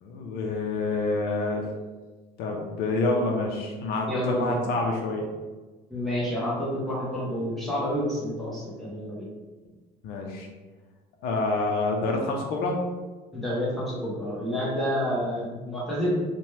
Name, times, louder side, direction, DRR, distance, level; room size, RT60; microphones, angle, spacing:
voice 1, 0.0-1.6 2.4-5.3 10.0-10.5 11.2-12.8 15.1-15.2, left 2 dB, 70° left, 1 dB, 0.5 m, -27 dB
voice 2, 4.1-4.6 5.9-9.3 13.3-16.2, equal, ahead, -8 dB, 0.7 m, -29 dB
2.8 x 2.2 x 3.1 m, 1.3 s
cardioid pair, 175°, 17 cm